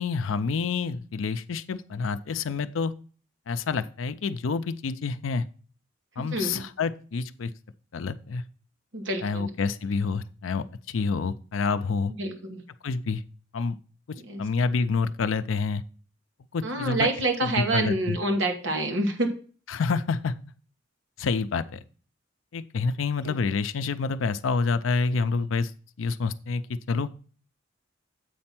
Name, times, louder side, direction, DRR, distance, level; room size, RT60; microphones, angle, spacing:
voice 1, 0.0-2.9 3.5-5.4 6.2-7.5 7.9-8.4 9.2-12.1 12.8-13.2 13.5-13.8 14.4-15.8 16.5-17.1 17.4-18.2 19.7-20.3 21.2-21.8 22.5-25.7 26.0-27.1, left 4 dB, 85° left, 11 dB, 0.5 m, -28 dB
voice 2, 6.3-6.6 8.9-9.5 12.1-12.6 14.3-14.4 16.6-19.3 23.2-23.3, right 2 dB, 70° right, 4 dB, 1.4 m, -27 dB
7.9 x 4.3 x 5.8 m, 0.40 s
head